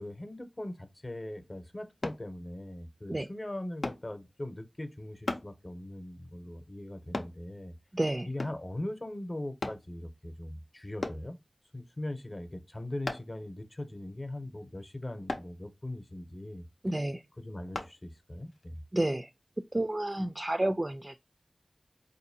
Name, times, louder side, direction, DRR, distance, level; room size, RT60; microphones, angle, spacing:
voice 1, 0.0-7.7 8.2-11.4 11.7-16.6 17.4-18.7, left 1 dB, 40° left, 0.7 m, -40 dB
sound 1, 2.0-2.3 3.8-4.1 5.3-5.5 7.1-7.4 8.4-8.7 9.6-9.8 11.0-11.3 13.1-13.4 15.3-15.5 17.7-17.9 18.5-18.6, left 2 dB, 90° left, 0.5 m, -35 dB
voice 2, 7.9-8.3 16.8-17.2 18.9-19.3 19.7-21.2, right 1 dB, 35° right, 0.3 m, -30 dB
4.2 x 2.6 x 2.7 m
wide cardioid pair, 40°, 0 cm